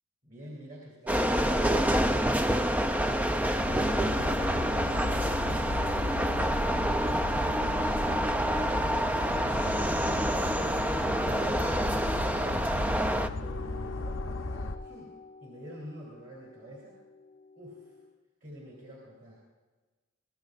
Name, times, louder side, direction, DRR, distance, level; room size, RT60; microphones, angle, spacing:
voice 1, 0.2-2.3 9.6-13.0 13.4-15.1 15.4-17.0 17.5-18.0 18.4-19.4, equal, 40° right, -4 dB, 2.9 m, -48 dB
sound 1, 1.1-13.3, right 1 dB, 5° right, 0.3 m, -27 dB
sound 2, 3.6-14.8, left 2 dB, 70° left, 0.6 m, -35 dB
sound 3, 13.3-18.1, left 3 dB, 30° left, 0.7 m, -48 dB
21.0 x 15.5 x 2.5 m, 1.3 s
head